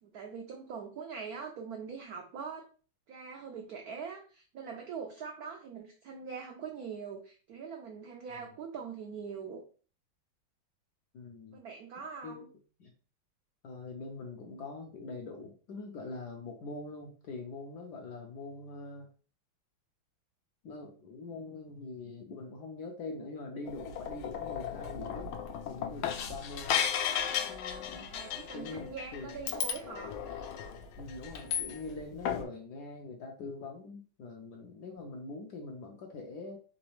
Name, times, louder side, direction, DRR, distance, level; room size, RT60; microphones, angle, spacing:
voice 1, 0.0-2.7 3.1-9.6 11.5-12.5 28.1-30.1, right 6 dB, 80° right, 2 dB, 0.8 m, -43 dB
voice 2, 11.1-11.6 12.2-12.5 12.8-12.9 13.6-19.1 20.6-25.3 25.7-26.8 27.5-28.2 28.5-29.4 31.0-36.6, left 3 dB, 70° left, 1 dB, 1.0 m, -43 dB
sound 1, 23.7-32.0 32.3-32.4, left 8 dB, 90° left, 1.5 m, -35 dB
4.0 x 3.1 x 3.1 m, 0.40 s
omnidirectional pair, 2.3 m